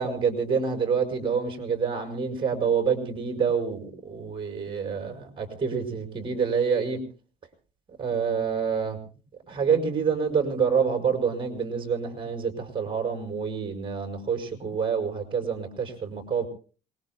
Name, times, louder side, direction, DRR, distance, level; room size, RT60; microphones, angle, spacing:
voice 1, 0.0-7.0 8.0-9.0 9.5-16.5, right 6 dB, 30° right, 5 dB, 5.4 m, -27 dB
27.0 x 21.0 x 2.2 m, 0.38 s
cardioid pair, 110°, 17 cm